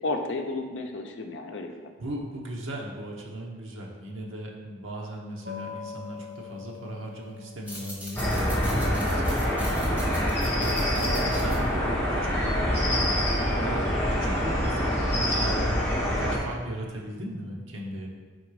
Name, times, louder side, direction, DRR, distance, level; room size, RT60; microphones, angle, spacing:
voice 1, 0.0-1.9 10.9-11.2 16.0-16.3, left 2 dB, 70° left, 3 dB, 0.6 m, -33 dB
voice 2, 2.0-10.3 10.6-18.1, right 1 dB, 90° right, -1 dB, 1.1 m, -37 dB
sound 1, 5.4-11.6, left 7 dB, 65° right, 0.7 m, -45 dB
sound 2, 7.5-12.7, right 1 dB, 10° right, 1.2 m, -42 dB
sound 3, 8.2-16.4, equal, 10° left, 1.2 m, -25 dB
4.9 x 4.3 x 4.7 m, 1.4 s
head